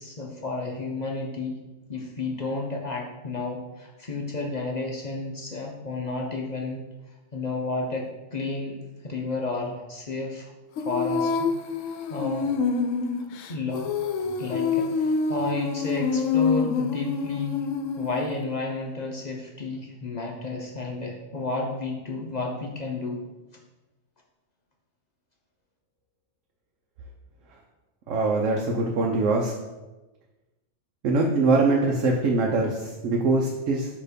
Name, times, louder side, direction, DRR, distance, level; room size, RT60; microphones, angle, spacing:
voice 1, 0.0-1.6 1.9-6.8 7.3-8.8 9.0-10.5 10.8-11.5 12.1-12.5 13.5-13.9 14.2-17.7 18.0-23.2, left 3 dB, 50° left, 0 dB, 0.5 m, -31 dB
Female singing, 10.8-18.4, left 5 dB, 80° left, 0.9 m, -26 dB
voice 2, 28.1-29.5 31.0-33.9, right 3 dB, 75° right, 0 dB, 1.0 m, -23 dB
6.5 x 3.0 x 5.0 m, 1.1 s
omnidirectional pair, 1.3 m